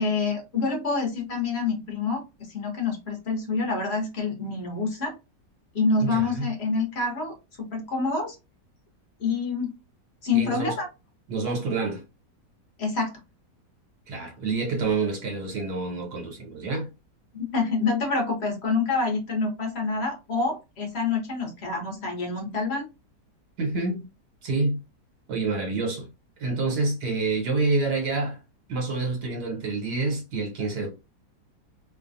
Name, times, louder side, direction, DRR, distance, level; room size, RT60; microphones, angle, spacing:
voice 1, 0.0-2.2 2.5-5.1 5.7-8.4 9.2-9.7 10.2-10.9 12.8-13.1 17.3-22.8, left 4 dB, 45° left, 1.0 m, -27 dB
voice 2, 6.0-6.5 10.3-10.8 11.3-12.0 14.1-16.9 23.6-24.0 24.4-24.8 25.3-26.1 26.4-28.4 28.7-30.9, right 3 dB, 70° right, 1.5 m, -27 dB
3.2 x 2.2 x 2.5 m
omnidirectional pair, 1.8 m